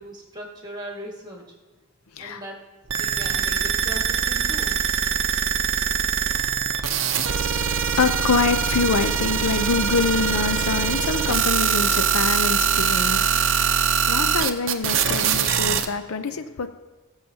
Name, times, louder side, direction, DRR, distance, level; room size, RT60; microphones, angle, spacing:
voice 1, 0.0-1.4 2.2-2.6 2.9-4.8, right 1 dB, 20° right, -1 dB, 1.8 m, -38 dB
sound 1, 2.9-15.9, right 7 dB, 60° right, 0.6 m, -23 dB
voice 2, 7.9-13.4 14.1-16.7, left 4 dB, 75° left, 9 dB, 0.6 m, -25 dB
20.0 x 7.3 x 2.8 m, 1.2 s
head